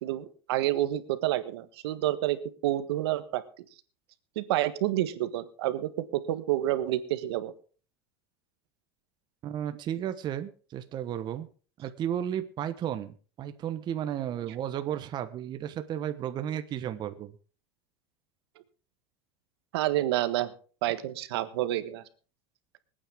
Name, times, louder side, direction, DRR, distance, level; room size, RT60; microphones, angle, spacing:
voice 1, 0.0-3.6 4.3-7.5 19.7-20.5 20.8-22.0, right 14 dB, 85° right, 11 dB, 1.4 m, -29 dB
voice 2, 9.4-11.5 11.8-17.3, right 10 dB, 35° right, 9 dB, 1.2 m, -33 dB
24.5 x 9.0 x 3.6 m, 0.39 s
supercardioid pair, 140°, 13 cm